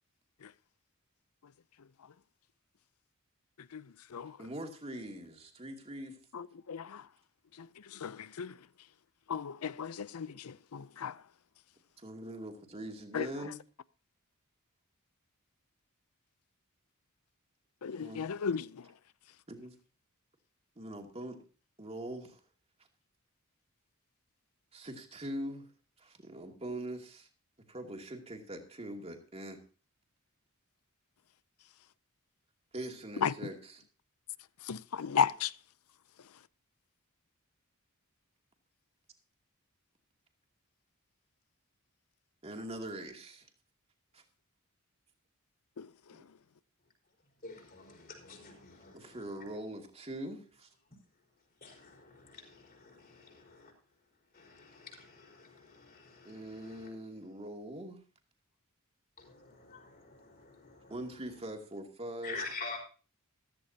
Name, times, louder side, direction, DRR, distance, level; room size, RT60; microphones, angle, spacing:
voice 1, 4.4-6.2 12.0-13.6 18.0-18.3 19.5-19.7 20.8-21.4 21.8-22.4 24.7-25.7 26.0-27.3 27.7-29.6 32.7-33.8 42.4-43.5 44.1-44.2 46.1-46.2 48.9-50.7 56.2-58.0 60.9-62.4, right 1 dB, 30° right, 2.5 m, -42 dB
voice 2, 6.3-7.0 8.0-8.5 9.3-11.1 13.1-13.3 17.8-18.7 33.2-33.3 34.7-35.5 45.8-45.9, left 7 dB, 90° left, 0.5 m, -34 dB
voice 3, 47.4-49.2 51.6-53.7 54.3-56.9 59.2-60.9 62.2-62.8, left 3 dB, 45° left, 4.9 m, -47 dB
15.0 x 14.0 x 2.8 m
head